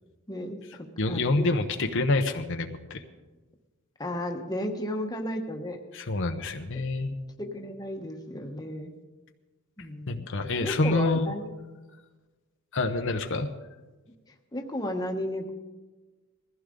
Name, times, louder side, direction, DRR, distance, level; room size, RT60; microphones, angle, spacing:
voice 1, 0.3-1.4 4.0-5.8 7.4-8.9 9.8-10.3 10.6-11.5 14.5-15.5, left 1 dB, 15° left, 2 dB, 1.2 m, -34 dB
voice 2, 1.0-3.0 5.9-7.1 10.1-11.3 12.7-13.5, left 2 dB, 60° left, 5 dB, 0.9 m, -27 dB
21.0 x 15.5 x 3.8 m, 1.2 s
head